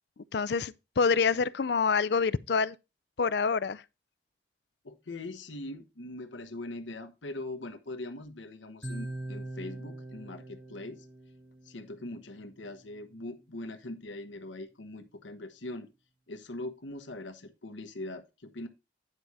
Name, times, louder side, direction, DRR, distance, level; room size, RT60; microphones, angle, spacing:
voice 1, 0.3-2.8 3.2-3.8, left 5 dB, 65° left, 0.4 m, -27 dB
voice 2, 4.8-11.1 11.6-15.9 16.3-18.7, left 2 dB, 85° left, 1.1 m, -41 dB
Marimba xylophone, 8.8-10.9, left 3 dB, 10° left, 2.9 m, -56 dB
sound 1, 8.8-12.9, right 2 dB, 30° right, 1.0 m, -43 dB
10.0 x 4.8 x 4.2 m
head